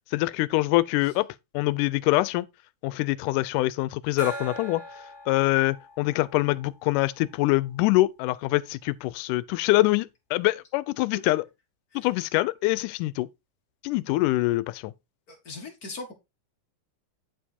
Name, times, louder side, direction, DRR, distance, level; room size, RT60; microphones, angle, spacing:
voice 1, 0.1-1.3 1.5-2.5 2.8-4.8 5.3-11.4 12.0-13.3 13.8-14.9, left 19 dB, 85° left, 2.1 m, -24 dB
Gong, 4.2-7.4, right 1 dB, 20° right, 1.8 m, -41 dB
voice 2, 15.3-16.1, left 3 dB, 45° left, 1.2 m, -39 dB
9.2 x 4.6 x 4.1 m
omnidirectional pair, 3.6 m